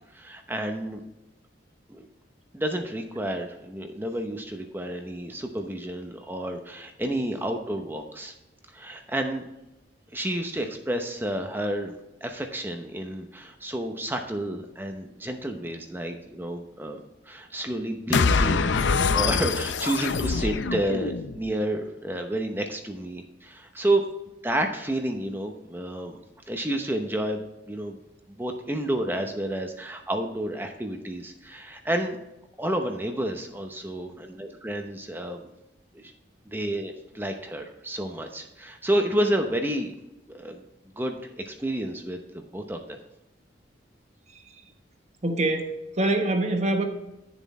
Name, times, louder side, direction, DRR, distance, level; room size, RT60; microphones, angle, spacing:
voice 1, 0.1-1.0 1.9-2.1 2.5-8.3 8.7-9.4 10.1-17.0 17.3-18.8 19.1-24.1 24.4-26.2 26.5-28.0 28.3-32.2 32.6-35.5 36.0-36.1 36.5-39.9 40.3-40.6 41.0-43.0, right 1 dB, 10° right, 4 dB, 0.8 m, -30 dB
sound 1, 18.1-21.5, left 4 dB, 75° left, 0.5 m, -24 dB
voice 2, 44.3-44.6 45.2-46.9, right 2 dB, 35° right, 5 dB, 1.1 m, -26 dB
11.0 x 7.1 x 4.2 m, 0.93 s
head